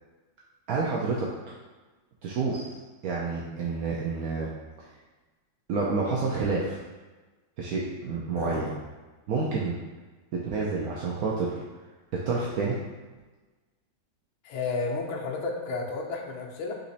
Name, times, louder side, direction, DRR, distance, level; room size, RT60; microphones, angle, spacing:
voice 1, 0.7-1.3 2.2-2.7 3.0-4.5 5.7-6.8 7.6-8.7 9.3-9.8 10.3-11.6 12.1-12.8, right 4 dB, 75° right, -4 dB, 0.8 m, -29 dB
voice 2, 8.4-8.7 14.4-16.7, left 4 dB, 85° left, 0 dB, 1.5 m, -32 dB
4.2 x 3.0 x 4.0 m, 1.2 s
omnidirectional pair, 2.2 m